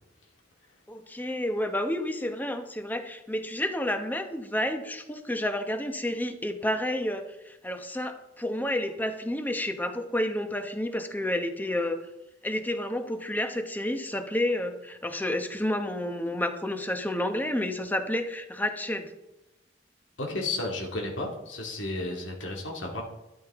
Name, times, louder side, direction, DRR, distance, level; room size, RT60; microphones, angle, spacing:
voice 1, 0.9-12.1 12.4-19.1, left 1 dB, 10° left, 7 dB, 0.9 m, -30 dB
voice 2, 20.2-23.0, left 2 dB, 85° left, 0 dB, 2.3 m, -33 dB
12.5 x 11.0 x 3.6 m, 0.95 s
head